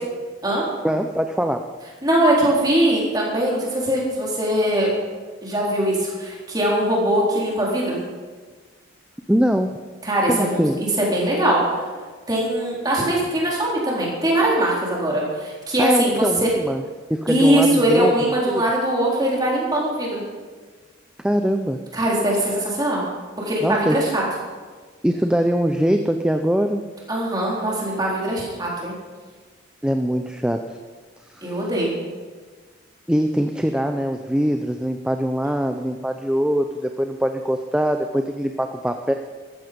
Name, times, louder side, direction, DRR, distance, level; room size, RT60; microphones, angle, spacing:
voice 1, 0.8-1.7 9.3-9.8 10.3-10.8 15.8-16.8 17.1-18.1 18.5-18.6 21.2-21.8 23.6-24.0 25.0-26.8 29.8-30.8 31.3-31.6 33.1-39.1, equal, 5° right, 5 dB, 0.5 m, -22 dB
voice 2, 2.0-4.9 5.4-8.0 10.0-11.6 12.3-16.5 17.3-20.2 21.9-23.0 23.4-24.2 27.1-28.9 31.4-31.9, right 1 dB, 20° right, -4 dB, 3.9 m, -21 dB
14.0 x 14.0 x 5.3 m, 1.4 s
head